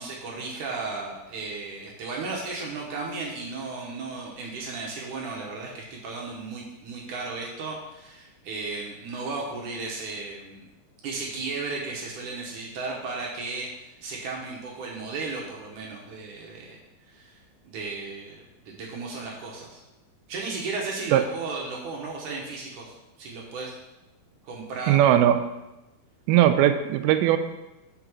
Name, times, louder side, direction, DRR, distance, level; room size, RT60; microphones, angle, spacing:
voice 1, 0.0-10.6 11.0-16.8 17.1-17.4 17.6-19.8 20.3-23.7 24.4-25.1, right 3 dB, 70° right, -2 dB, 2.2 m, -35 dB
voice 2, 24.9-25.4 26.3-27.4, right 11 dB, 90° right, 9 dB, 2.5 m, -19 dB
5.7 x 5.0 x 6.0 m, 0.98 s
omnidirectional pair, 4.3 m